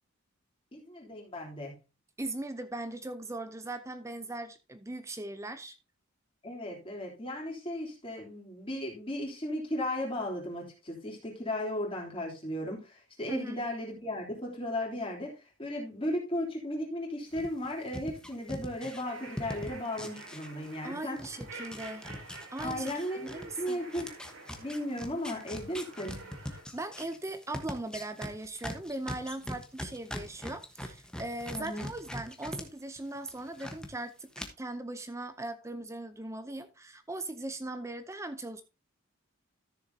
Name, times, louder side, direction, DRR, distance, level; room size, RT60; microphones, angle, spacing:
voice 1, 0.7-1.7 6.4-15.3 15.6-21.2 22.6-24.1 24.6-26.3 31.5-31.9, left 1 dB, 25° left, 3.2 m, -36 dB
voice 2, 2.2-5.8 13.3-13.6 20.8-22.0 22.5-23.8 26.7-34.3 34.6-38.6, right 2 dB, 15° right, 0.6 m, -39 dB
sound 1, 17.3-20.9 21.2-32.6 33.0-33.9 34.3-34.4, left 1 dB, 5° left, 1.2 m, -41 dB
sound 2, 19.0-26.6, right 3 dB, 75° right, 3.3 m, -49 dB
13.5 x 7.0 x 2.8 m
head